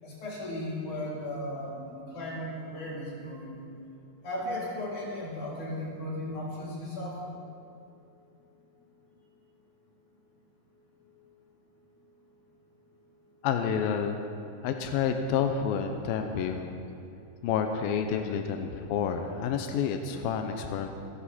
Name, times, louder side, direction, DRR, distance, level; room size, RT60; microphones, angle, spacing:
voice 1, 0.0-3.6 4.2-7.2, left 1 dB, 55° left, -5 dB, 4.8 m, -36 dB
voice 2, 13.4-14.2 14.6-16.7 17.4-20.9, left 7 dB, 90° left, 5 dB, 2.6 m, -29 dB
28.5 x 11.0 x 4.3 m, 2.6 s
omnidirectional pair, 4.2 m